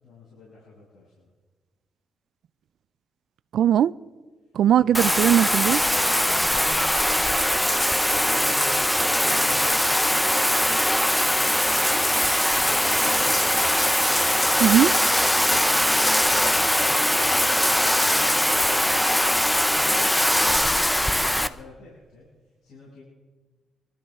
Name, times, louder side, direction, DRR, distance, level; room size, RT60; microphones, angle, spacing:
voice 1, 0.0-1.3 4.8-5.0 6.0-7.9 8.1-13.7 14.0-14.9 15.4-19.0 19.6-22.3 22.6-23.0, left 2 dB, 80° left, -7 dB, 6.2 m, -45 dB
voice 2, 3.5-3.9 4.6-5.8 14.6-14.9, right 10 dB, 75° right, 18 dB, 0.4 m, -19 dB
Bathtub (filling or washing), 4.9-21.5, left 1 dB, 5° left, 0.6 m, -21 dB
25.5 x 13.0 x 3.6 m, 1.3 s
cardioid pair, 115°, 0 cm